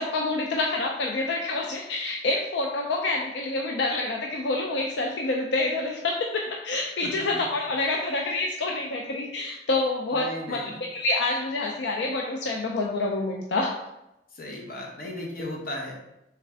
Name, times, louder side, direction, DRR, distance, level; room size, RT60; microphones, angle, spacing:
voice 1, 0.0-10.6 10.9-13.7, left 2 dB, 80° left, 0 dB, 0.4 m, -27 dB
voice 2, 10.1-10.8 14.3-16.0, left 1 dB, 55° left, -1 dB, 1.0 m, -36 dB
3.4 x 3.2 x 3.4 m, 0.88 s
head